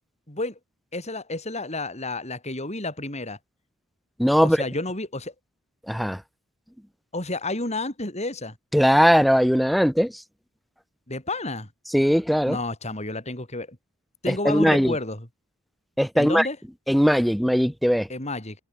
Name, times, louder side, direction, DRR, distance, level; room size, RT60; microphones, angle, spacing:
voice 1, 0.3-0.6 0.9-3.4 4.4-5.3 7.1-8.6 11.1-11.7 12.5-13.8 14.2-15.3 16.1-16.6 18.1-18.6, left 2 dB, 30° left, 5.9 m, -30 dB
voice 2, 4.2-4.6 5.9-6.2 8.7-10.1 11.9-12.6 14.3-14.9 16.0-16.5 16.9-18.1, equal, ahead, 0.9 m, -19 dB
head